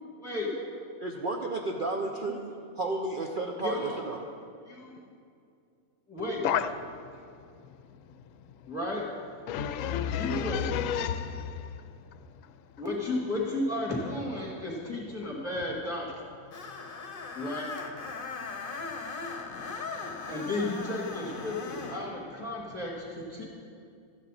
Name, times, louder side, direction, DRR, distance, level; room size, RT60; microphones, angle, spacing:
voice 1, 0.2-0.7 3.6-4.1 4.7-5.0 6.1-6.4 8.7-9.0 10.0-10.9 12.8-16.1 17.3-17.9 20.3-23.4, left 2 dB, 10° left, -4 dB, 2.3 m, -33 dB
voice 2, 1.0-2.5 2.8-4.2, right 2 dB, 50° right, 1 dB, 0.7 m, -32 dB
voice 3, 9.5-11.7, left 9 dB, 75° left, 10 dB, 0.9 m, -30 dB
Screech, 16.5-22.0, left 4 dB, 45° left, 1.0 m, -39 dB
13.0 x 9.3 x 4.2 m, 2.4 s
omnidirectional pair, 1.5 m